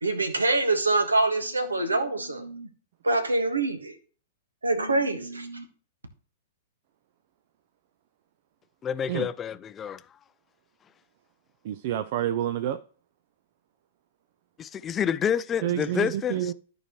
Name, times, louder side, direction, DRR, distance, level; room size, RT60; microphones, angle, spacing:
voice 1, 0.0-2.7 3.0-3.9 4.6-5.6, right 2 dB, 85° right, 1.5 m, -25 dB
voice 2, 8.8-10.0 14.6-16.5, left 8 dB, 20° left, 0.4 m, -28 dB
voice 3, 11.6-12.8 15.6-16.5, right 11 dB, 50° right, 0.4 m, -28 dB
13.5 x 4.7 x 3.1 m
figure-of-eight pair, 105°, 0 cm